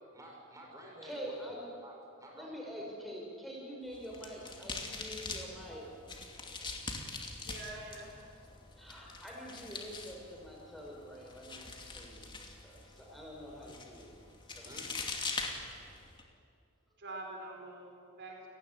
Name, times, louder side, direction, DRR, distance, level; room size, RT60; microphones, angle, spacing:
voice 1, 0.1-1.5 1.8-2.7 14.6-14.9, equal, 15° right, -1 dB, 6.4 m, -51 dB
voice 2, 1.0-1.7 2.3-5.9 8.8-14.2 14.4-14.8, equal, ahead, -2 dB, 5.7 m, -46 dB
sound 1, 3.9-16.2, left 3 dB, 20° left, 2.5 m, -44 dB
voice 3, 7.5-8.1 17.0-18.5, right 2 dB, 55° right, 1 dB, 4.3 m, -45 dB
29.5 x 17.5 x 9.7 m, 2.4 s
head